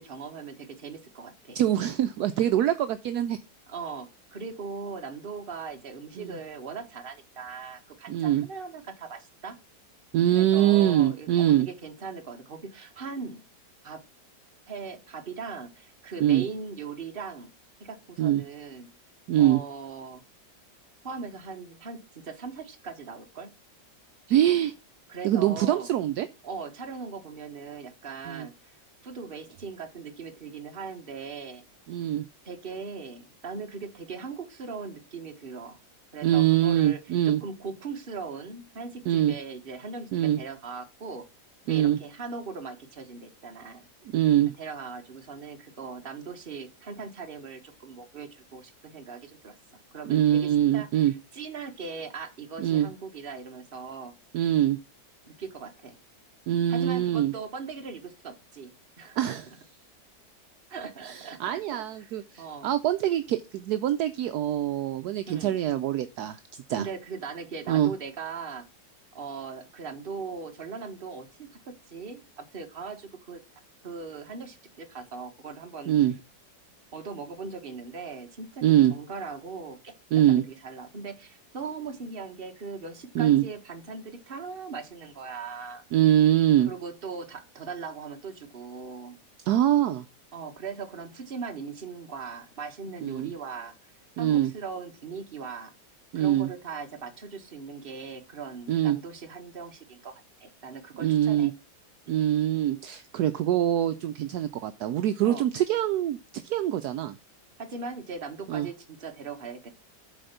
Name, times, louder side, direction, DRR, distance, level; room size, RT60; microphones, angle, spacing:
voice 1, 0.0-1.6 3.7-9.6 10.3-13.4 13.8-14.0 14.7-17.5 17.8-18.9 19.4-20.2 21.0-23.5 25.1-25.9 26.4-28.7 29.0-31.6 32.4-35.8 36.1-41.2 41.7-43.9 44.6-49.6 49.9-54.1 55.3-56.0 56.7-59.2 60.7-62.1 62.4-62.7 65.3-65.5 66.7-68.7 69.1-73.4 73.8-75.9 76.9-78.6 78.9-79.9 80.3-85.8 86.6-89.2 90.3-93.8 94.2-95.7 96.1-100.1 100.4-101.5 102.1-102.3 105.2-105.4 107.6-109.7, right 5 dB, 35° right, 5 dB, 1.4 m, -39 dB
voice 2, 1.5-3.4 6.2-6.4 8.1-8.4 10.1-11.7 16.2-16.4 18.2-18.4 19.3-19.6 24.3-24.7 25.2-26.3 28.3-28.5 31.9-32.3 36.2-37.4 39.1-39.3 40.1-40.4 41.7-42.0 44.1-44.5 50.1-51.1 52.6-52.9 54.3-54.8 56.5-57.3 59.2-59.5 61.0-66.4 66.7-66.9 67.7-67.9 75.9-76.1 78.6-78.9 80.1-80.4 83.1-83.4 85.9-86.7 89.5-90.0 93.0-93.3 94.2-94.5 96.1-96.5 98.7-99.0 101.0-101.5 102.1-107.2 108.5-108.7, right 12 dB, 70° right, 10 dB, 1.0 m, -24 dB
7.8 x 4.2 x 6.6 m, 0.28 s
omnidirectional pair, 1.8 m